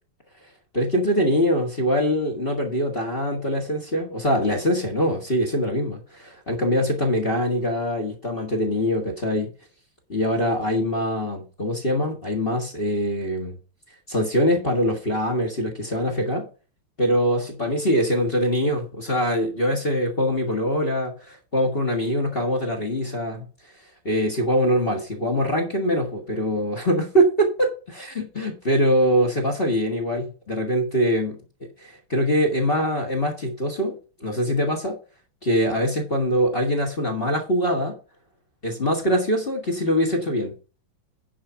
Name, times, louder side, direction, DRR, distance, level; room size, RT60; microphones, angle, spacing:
voice 1, 0.7-9.5 10.1-13.6 14.1-16.5 17.0-23.4 24.0-31.4 31.9-35.0 35.4-38.0 38.6-40.5, equal, 30° left, 1.9 m, -23 dB
10.0 x 4.9 x 5.8 m
omnidirectional pair, 2.3 m